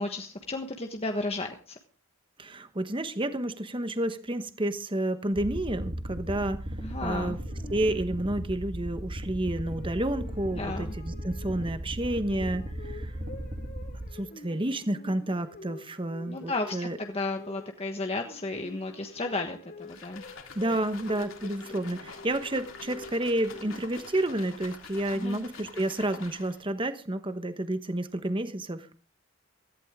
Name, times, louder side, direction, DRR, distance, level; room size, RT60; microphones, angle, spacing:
voice 1, 0.0-1.8 6.8-7.4 10.6-10.9 16.3-20.2 25.1-25.4, left 2 dB, 30° left, 4 dB, 1.3 m, -33 dB
voice 2, 2.4-6.6 7.0-7.4 7.7-12.6 12.9-13.1 14.1-17.0 20.5-28.9, right 1 dB, 25° right, 10 dB, 1.1 m, -30 dB
sound 1, 5.3-14.1, right 1 dB, 40° right, 2.8 m, -37 dB
sound 2, 7.5-8.4 9.5-24.4, left 2 dB, 45° left, 3.5 m, -48 dB
sound 3, 19.8-26.7, left 4 dB, 70° left, 3.4 m, -46 dB
17.5 x 15.0 x 3.6 m, 0.37 s
head